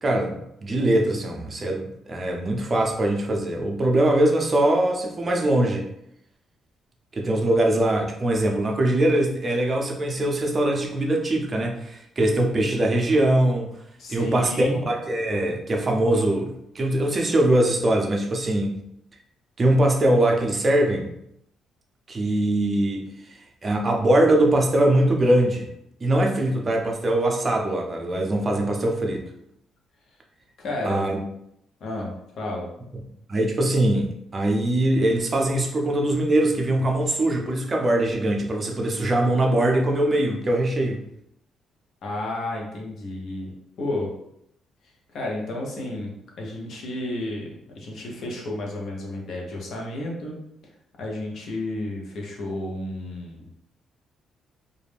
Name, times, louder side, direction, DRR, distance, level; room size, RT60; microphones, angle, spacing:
voice 1, 0.0-5.9 7.1-13.7 14.1-18.8 19.6-21.1 22.1-23.0 23.6-25.7 26.0-29.2 30.9-31.2 33.3-41.0, right 1 dB, 35° right, 1 dB, 0.5 m, -22 dB
voice 2, 14.0-14.8 30.6-31.1 31.8-32.7 42.0-43.5 43.8-44.1 45.1-47.5 47.7-50.4 51.0-53.5, left 1 dB, 65° left, -1 dB, 0.8 m, -31 dB
2.4 x 2.1 x 3.2 m, 0.77 s
cardioid pair, 90°, 0 cm